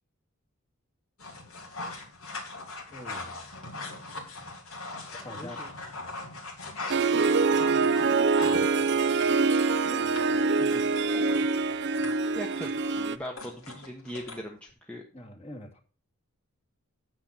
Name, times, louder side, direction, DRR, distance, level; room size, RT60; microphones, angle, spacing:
sound 1, 1.2-14.7, left 2 dB, 70° left, 3.4 m, -41 dB
voice 1, 2.9-3.3 5.1-5.8 9.8-10.2 10.5-11.3 15.1-15.8, left 1 dB, 30° left, 1 dB, 2.3 m, -45 dB
voice 2, 5.4-5.7 7.1-7.6 11.0-11.3 12.3-15.0, equal, 5° left, 1 dB, 1.1 m, -40 dB
Harp, 6.9-13.2, right 4 dB, 50° right, 0.6 m, -25 dB
9.7 x 7.8 x 4.2 m, 0.38 s
head